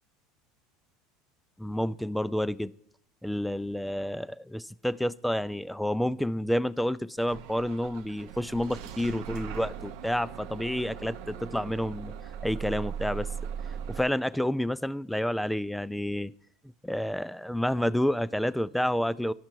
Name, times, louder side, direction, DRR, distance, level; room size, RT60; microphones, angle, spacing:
voice 1, 1.6-2.7 3.2-12.1 12.4-13.3 13.9-16.3 16.8-19.3, equal, 5° left, 0.3 m, -29 dB
Bus / Engine starting, 7.3-14.0, right 8 dB, 70° right, 0.6 m, -39 dB
11.5 x 5.8 x 4.5 m
hypercardioid pair, 95°, 0 cm